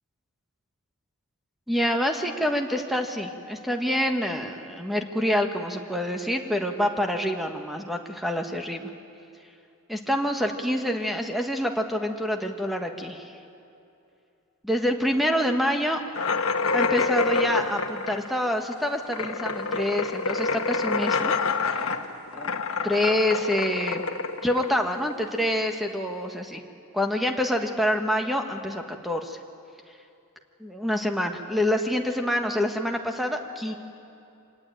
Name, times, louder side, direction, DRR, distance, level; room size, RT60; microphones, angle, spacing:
voice 1, 1.7-8.8 9.9-13.3 14.6-16.0 16.7-21.4 22.3-24.0 24.4-26.6 26.9-29.4 30.6-33.7, equal, ahead, 4 dB, 1.5 m, -26 dB
sound 1, 16.1-25.5, left 4 dB, 80° left, 1.3 m, -27 dB
25.0 x 20.0 x 9.0 m, 2.7 s
head